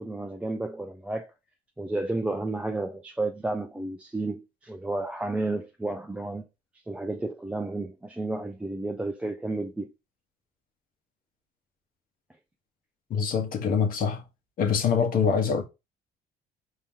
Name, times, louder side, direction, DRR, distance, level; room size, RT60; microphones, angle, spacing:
voice 1, 0.0-1.3 1.8-6.5 6.9-9.9, right 2 dB, 5° right, 0.4 m, -32 dB
voice 2, 13.1-14.2 14.6-15.6, left 6 dB, 55° left, 1.1 m, -24 dB
4.4 x 2.8 x 3.6 m
cardioid pair, 110°, 17 cm